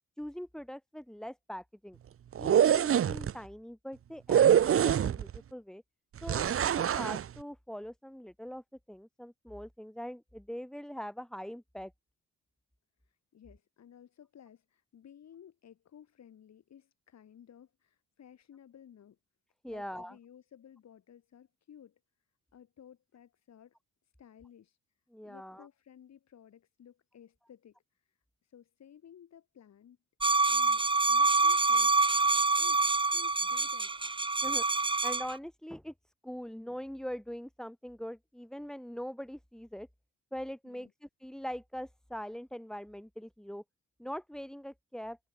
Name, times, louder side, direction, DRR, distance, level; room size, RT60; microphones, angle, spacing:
voice 1, 0.2-2.0 2.4-5.8 6.2-11.9 19.6-20.2 25.1-25.7 34.4-34.6 35.0-35.9 36.2-39.9 40.3-43.6 44.0-45.2, equal, ahead, 4.0 m, -42 dB
sound 1, 2.3-3.3 4.3-5.4 6.3-7.2, right 9 dB, 45° right, 0.9 m, -24 dB
voice 2, 13.0-19.2 19.7-22.0 22.5-23.8 24.2-24.8 25.2-30.0 30.5-32.0 32.6-34.2 40.6-40.9, left 9 dB, 60° left, 7.7 m, -56 dB
sound 2, 30.2-35.4, right 3 dB, 15° right, 1.4 m, -26 dB
cardioid pair, 115°, 30 cm